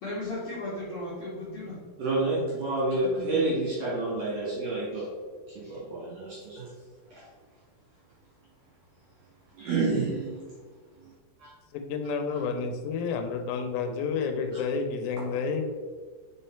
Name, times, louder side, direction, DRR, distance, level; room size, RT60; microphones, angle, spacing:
voice 1, 0.0-1.8 3.1-3.4, left 2 dB, 60° left, -8 dB, 1.5 m, -35 dB
voice 2, 2.0-5.1 5.5-6.7 7.1-7.2 9.6-10.4 11.0-11.1 11.4-11.5 14.5-14.6, right 2 dB, 60° right, -7 dB, 1.8 m, -29 dB
voice 3, 11.7-15.6, left 5 dB, 90° left, 5 dB, 2.8 m, -30 dB
4.9 x 4.6 x 4.4 m, 1.5 s
omnidirectional pair, 4.7 m